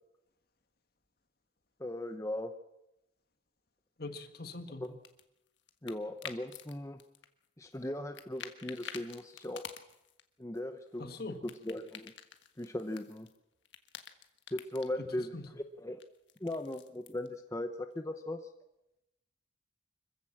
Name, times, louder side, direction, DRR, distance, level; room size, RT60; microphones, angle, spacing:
voice 1, 1.8-2.5 4.8-5.0 5.8-7.0 7.6-9.7 10.4-12.1 12.6-13.3 14.5-16.0 16.4-18.5, left 1 dB, 15° left, 7 dB, 0.7 m, -38 dB
voice 2, 4.0-4.9 11.0-11.4 15.0-15.1 15.3-15.4, left 2 dB, 50° left, 8 dB, 1.7 m, -42 dB
sound 1, 4.8-6.7 7.0-7.9 8.1-10.2 10.6-13.4 13.6-14.9 16.0-17.3, left 8 dB, 70° left, 1.5 m, -49 dB
25.5 x 15.0 x 7.4 m, 0.89 s
head